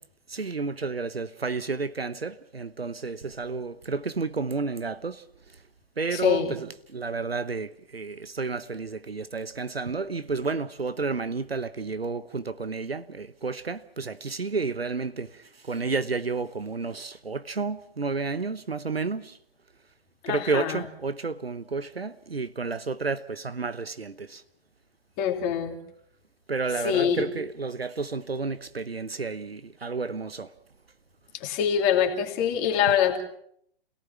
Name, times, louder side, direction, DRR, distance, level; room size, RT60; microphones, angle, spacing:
voice 1, 0.3-5.2 6.0-19.4 20.3-24.4 26.5-30.5, right 4 dB, 80° right, 1.0 m, -31 dB
voice 2, 6.1-6.6 20.2-20.8 25.2-25.8 26.8-27.3 31.3-33.2, left 8 dB, 30° left, 2.8 m, -24 dB
28.0 x 17.5 x 5.9 m
figure-of-eight pair, 115°, 30 cm